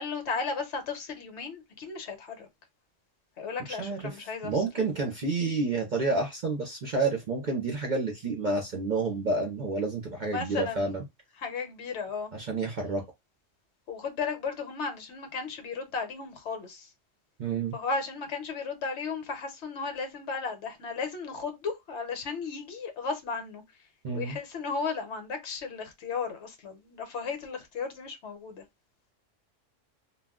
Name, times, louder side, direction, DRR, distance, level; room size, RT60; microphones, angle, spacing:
voice 1, 0.0-2.5 3.4-4.6 10.2-10.8 11.4-12.3 13.9-16.9 17.7-23.6 24.1-28.6, left 4 dB, 65° left, 1.0 m, -35 dB
voice 2, 3.7-11.0 12.3-13.0 17.4-17.8 24.0-24.4, right 3 dB, 50° right, 0.6 m, -29 dB
2.3 x 2.2 x 3.4 m
omnidirectional pair, 1.3 m